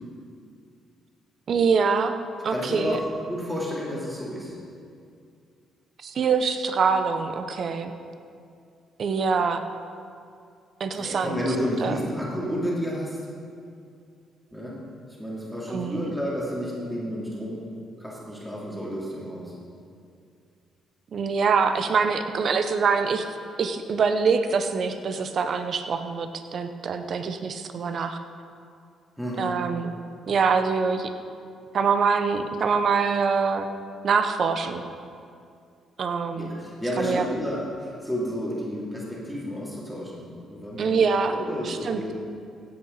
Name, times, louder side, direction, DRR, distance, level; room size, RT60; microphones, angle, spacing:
voice 1, 1.5-2.1 2.4-3.0 6.0-7.9 9.0-9.6 10.8-11.4 11.8-12.0 15.7-16.2 21.1-23.3 23.6-28.2 29.4-29.9 30.3-31.1 31.7-33.7 34.0-34.9 36.0-36.5 37.0-37.3 40.8-41.4 41.6-42.1, right 5 dB, 55° right, 8 dB, 0.8 m, -24 dB
voice 2, 2.5-3.0 3.3-4.6 10.9-13.2 14.5-14.8 15.2-17.6 18.0-19.5 29.2-29.5 36.3-42.1, equal, 5° right, -6 dB, 3.0 m, -31 dB
16.0 x 8.7 x 4.1 m, 2.4 s
cardioid pair, 90°, 0 cm